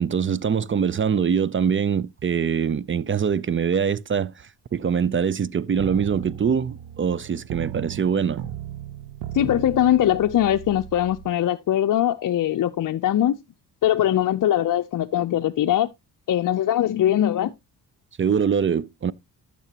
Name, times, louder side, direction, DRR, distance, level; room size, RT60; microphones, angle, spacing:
voice 1, 0.0-8.4 18.2-19.1, right 7 dB, 30° right, 0.5 m, -23 dB
sound 1, 5.8-11.3, right 11 dB, 80° right, 0.9 m, -36 dB
voice 2, 9.3-13.3 13.8-15.9 16.3-17.5, left 11 dB, 50° left, 0.6 m, -21 dB
12.0 x 6.9 x 2.8 m
cardioid pair, 75°, 41 cm